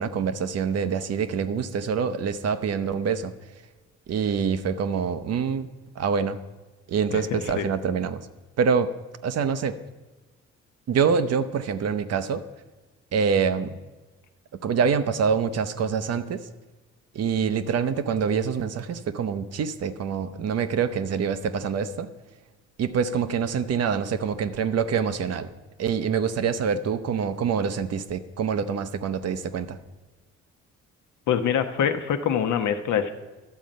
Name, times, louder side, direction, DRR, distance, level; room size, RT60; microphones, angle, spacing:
voice 1, 0.0-3.3 4.1-5.7 6.0-6.4 6.9-8.2 8.6-8.9 9.2-9.8 10.9-12.4 13.1-13.8 14.6-16.4 17.1-22.1 22.8-25.5 25.8-29.8, right 6 dB, 55° right, 11 dB, 0.7 m, -25 dB
voice 2, 7.1-7.7 31.3-33.1, left 8 dB, 75° left, 8 dB, 0.9 m, -25 dB
11.5 x 7.4 x 5.2 m, 1.2 s
cardioid pair, 90°, 30 cm